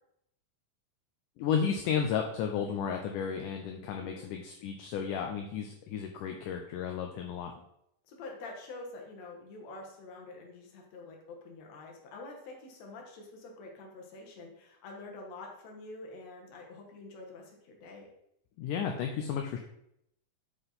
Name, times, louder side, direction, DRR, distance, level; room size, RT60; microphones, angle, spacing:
voice 1, 1.4-7.5 18.6-19.6, left 7 dB, 75° left, 3 dB, 2.1 m, -33 dB
voice 2, 4.0-4.3 8.1-18.1, left 3 dB, 60° left, 1 dB, 2.4 m, -47 dB
8.0 x 5.5 x 4.1 m, 0.77 s
omnidirectional pair, 3.9 m